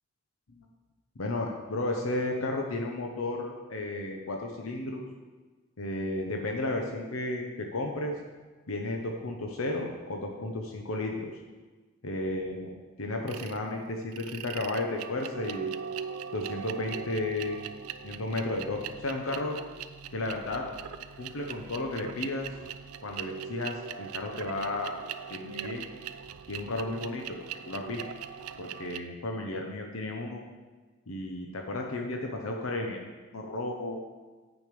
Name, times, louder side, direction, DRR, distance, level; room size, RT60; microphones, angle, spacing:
voice 1, 1.2-5.0 5.8-8.1 8.7-11.3 12.0-12.7 13.0-15.7 16.3-17.6 18.0-19.6 20.1-20.6 21.2-22.5 23.0-24.9 25.3-25.8 26.5-27.4 27.7-28.0 28.6-30.4 31.1-34.0, left 2 dB, 70° left, 2 dB, 0.9 m, -33 dB
sound 1, 13.3-13.6 14.1-29.0, right 8 dB, 90° right, 0.4 m, -40 dB
9.6 x 5.2 x 5.2 m, 1.3 s
head